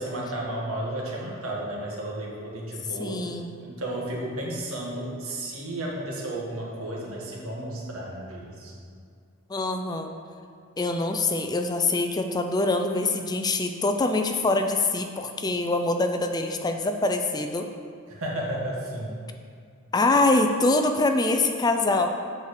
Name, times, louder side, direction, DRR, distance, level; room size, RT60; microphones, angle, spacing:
voice 1, 0.0-3.2 3.6-8.7 18.1-19.1, right 1 dB, 75° right, -3 dB, 1.8 m, -33 dB
voice 2, 3.0-3.6 9.5-10.1 10.8-17.7 19.9-22.1, left 2 dB, 20° left, 6 dB, 0.4 m, -24 dB
8.1 x 4.9 x 6.6 m, 2.2 s
head